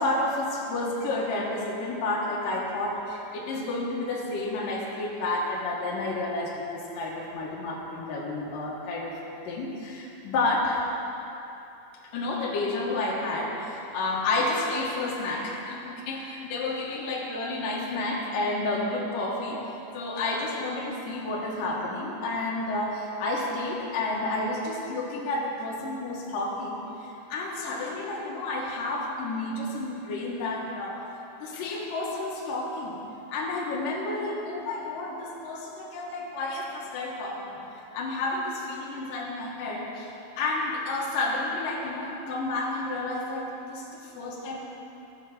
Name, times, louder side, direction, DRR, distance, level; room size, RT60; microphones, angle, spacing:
voice 1, 0.0-9.1 9.5-10.8 12.1-19.6 19.9-31.0 31.4-33.0 33.3-37.5 37.9-44.6, left 2 dB, 60° left, -4 dB, 2.6 m, -30 dB
14.5 x 7.2 x 5.8 m, 2.9 s
omnidirectional pair, 5.2 m